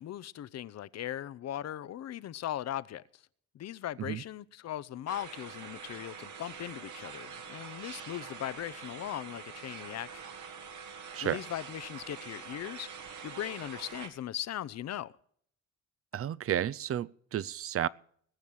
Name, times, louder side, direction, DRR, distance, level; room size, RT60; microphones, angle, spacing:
voice 1, 0.0-3.0 3.5-10.2 11.2-12.9 13.2-15.2, left 12 dB, 60° left, 0.7 m, -39 dB
sound 1, 5.1-14.1, right 6 dB, 75° right, 2.0 m, -45 dB
voice 2, 16.1-17.9, right 10 dB, 50° right, 0.6 m, -32 dB
20.5 x 7.2 x 6.2 m
cardioid pair, 90°, 30 cm